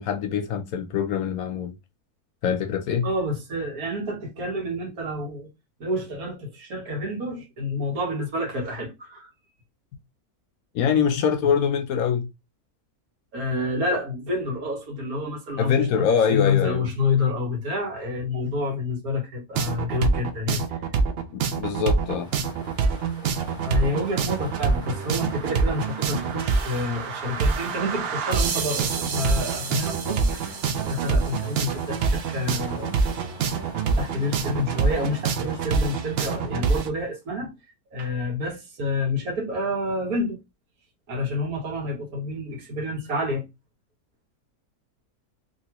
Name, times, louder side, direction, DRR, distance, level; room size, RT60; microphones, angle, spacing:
voice 1, 0.0-1.7 2.4-3.1 10.7-12.3 15.6-16.9 21.3-22.3, left 7 dB, 70° left, 1.0 m, -24 dB
voice 2, 3.0-5.5 5.8-9.3 13.3-20.8 23.6-30.6 30.8-33.1 33.8-40.4 41.1-43.4, left 2 dB, 65° right, 1.6 m, -28 dB
sound 1, 19.6-36.9, right 5 dB, 90° right, 0.5 m, -25 dB
sound 2, 21.8-37.2, equal, 5° right, 1.1 m, -46 dB
3.1 x 2.8 x 2.9 m
omnidirectional pair, 1.7 m